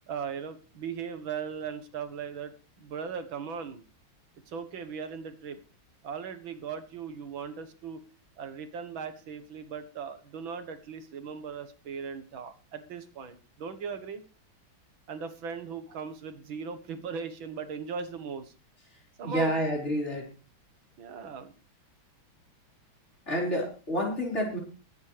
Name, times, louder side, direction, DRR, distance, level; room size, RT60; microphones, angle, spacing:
voice 1, 0.1-2.5 2.8-3.8 4.5-5.6 6.0-8.0 8.4-14.2 15.1-18.5 19.2-19.5 21.0-21.5, right 6 dB, 75° right, 9 dB, 2.2 m, -38 dB
voice 2, 19.2-20.3 23.3-24.6, equal, 30° left, -2 dB, 5.3 m, -29 dB
22.5 x 9.7 x 3.4 m, 0.35 s
omnidirectional pair, 2.2 m